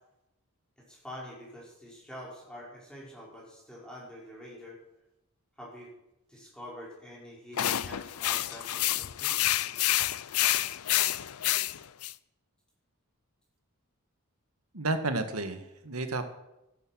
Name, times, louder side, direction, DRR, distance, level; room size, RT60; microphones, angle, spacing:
voice 1, 0.9-4.8 5.6-5.9 6.3-9.3, equal, 5° left, -5 dB, 5.4 m, -46 dB
sound 1, 7.6-12.1, left 14 dB, 80° left, 0.5 m, -28 dB
voice 2, 14.7-16.2, right 2 dB, 80° right, 8 dB, 1.7 m, -31 dB
15.0 x 12.5 x 6.3 m, 0.90 s
head